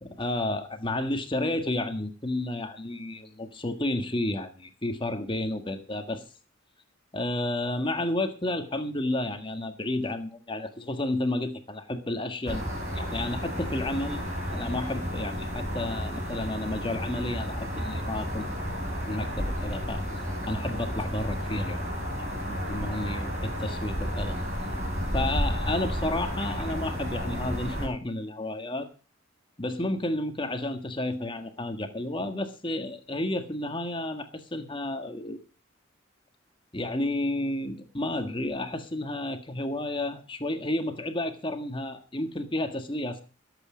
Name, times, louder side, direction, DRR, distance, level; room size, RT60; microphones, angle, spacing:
voice 1, 0.2-6.2 7.1-14.2 14.5-18.5 19.1-20.0 20.5-21.8 22.2-24.4 25.1-28.9 29.6-35.4 36.7-43.2, left 1 dB, 25° left, 7 dB, 1.6 m, -31 dB
sound 1, 12.5-27.9, equal, 35° right, 6.1 m, -32 dB
19.5 x 8.3 x 5.1 m, 0.35 s
head